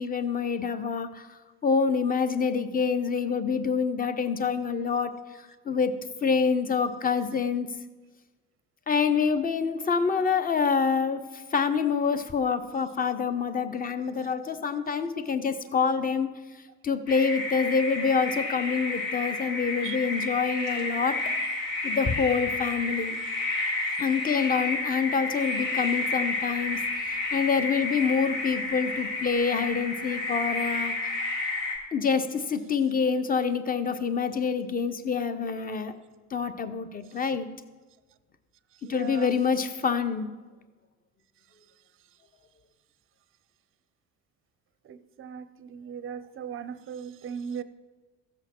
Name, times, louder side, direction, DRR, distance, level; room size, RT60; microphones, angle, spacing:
voice 1, 0.0-7.7 8.9-16.3 16.8-21.3 21.8-23.1 24.0-31.2 31.9-35.9 36.3-37.5 38.9-40.3, left 5 dB, 20° left, 12 dB, 0.7 m, -27 dB
sound 1, 17.1-31.8, left 2 dB, 65° left, 2.2 m, -31 dB
voice 2, 38.8-39.3 44.9-47.6, right 8 dB, 30° right, 15 dB, 0.6 m, -38 dB
15.0 x 7.9 x 4.4 m, 1.3 s
figure-of-eight pair, 55°, 44 cm